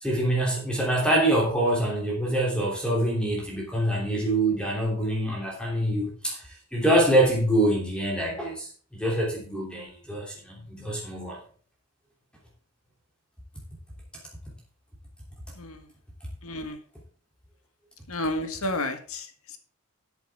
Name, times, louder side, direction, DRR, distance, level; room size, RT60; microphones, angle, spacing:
voice 1, 0.0-6.4 6.7-11.4, right 1 dB, 5° left, -2 dB, 3.0 m, -25 dB
voice 2, 16.4-16.8 18.1-19.2, left 1 dB, 80° left, 7 dB, 1.7 m, -30 dB
13.0 x 8.1 x 3.6 m, 0.43 s
head